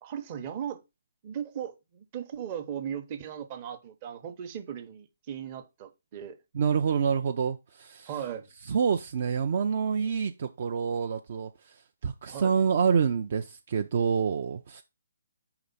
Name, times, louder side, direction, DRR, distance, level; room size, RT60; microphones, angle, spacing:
voice 1, 0.0-0.8 1.2-6.4 8.1-8.5 12.3-12.5, right 9 dB, 30° right, 0.8 m, -37 dB
voice 2, 6.5-8.1 8.7-14.8, right 6 dB, 50° right, 0.5 m, -27 dB
4.9 x 3.4 x 5.6 m
hypercardioid pair, 160°, 0 cm